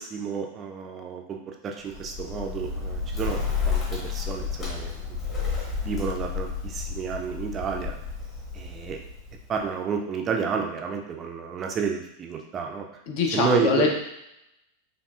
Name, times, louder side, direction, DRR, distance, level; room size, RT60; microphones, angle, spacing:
voice 1, 0.0-5.5 5.8-8.0 8.5-9.0 9.5-12.9 13.3-13.9, right 6 dB, 25° right, 2 dB, 0.5 m, -30 dB
Bird, 1.9-9.7, left 5 dB, 25° left, 1.2 m, -31 dB
voice 2, 13.1-13.9, left 5 dB, 50° left, 1 dB, 0.7 m, -23 dB
4.7 x 2.6 x 2.4 m, 0.82 s
figure-of-eight pair, 90°, 0 cm